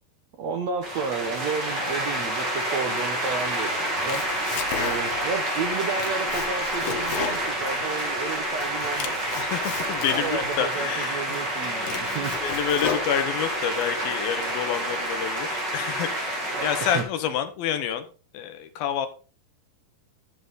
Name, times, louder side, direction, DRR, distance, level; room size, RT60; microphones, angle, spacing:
voice 1, 0.4-4.2 4.7-9.1 10.1-12.3 16.5-16.7 16.9-17.0, right 5 dB, 75° right, 5 dB, 1.6 m, -32 dB
sound 1, 0.8-17.0, right 1 dB, 30° right, 3.0 m, -28 dB
Domestic sounds home sounds, 3.8-5.3 5.7-8.2 8.6-10.6 11.1-11.2 11.6-13.6, left 7 dB, 90° left, 3.3 m, -34 dB
voice 2, 9.4-11.4 11.6-18.1 18.3-19.1, left 9 dB, 75° left, 9 dB, 2.7 m, -29 dB
12.0 x 7.4 x 4.0 m, 0.36 s
omnidirectional pair, 4.5 m